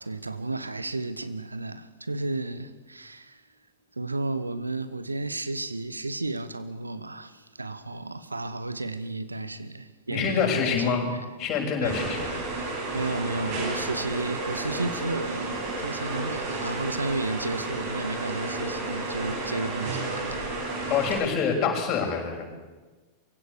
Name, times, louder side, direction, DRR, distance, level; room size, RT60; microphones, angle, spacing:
voice 1, 0.0-3.4 4.0-11.3 11.8-12.0 12.2-20.9, right 2 dB, 80° right, 1.1 m, -33 dB
voice 2, 10.1-11.1 11.4-12.3 20.9-22.4, left 6 dB, 35° left, 6.3 m, -26 dB
sound 1, 11.8-21.2, right 2 dB, 45° right, 8.0 m, -32 dB
24.0 x 16.5 x 8.4 m
figure-of-eight pair, 90°, 0 cm